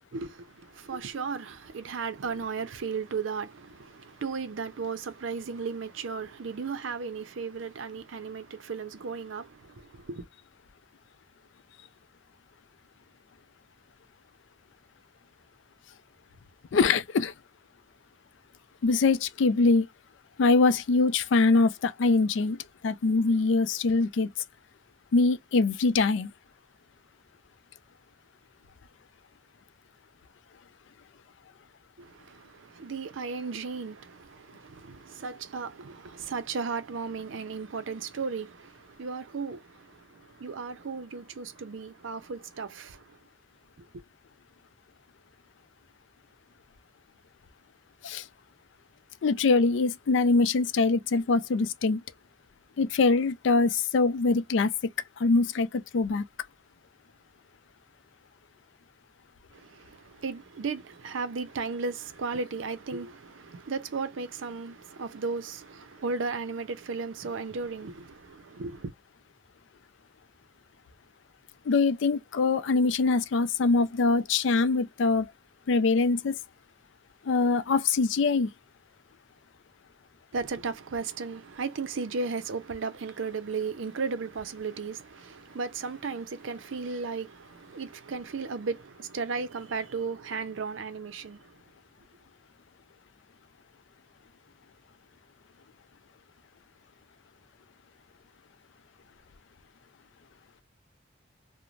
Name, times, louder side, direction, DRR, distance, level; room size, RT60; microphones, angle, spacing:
voice 1, 0.1-10.3 32.0-43.2 43.8-44.0 59.5-68.9 80.3-91.5, right 4 dB, 80° right, 0.5 m, -35 dB
voice 2, 16.7-17.3 18.8-19.9 20.4-22.6 22.8-24.3 25.1-26.3 48.0-48.2 49.2-52.0 52.8-54.7 55.2-56.2 71.7-75.3 75.7-76.4 77.2-78.5, left 3 dB, 70° left, 0.4 m, -23 dB
3.0 x 2.1 x 2.5 m
head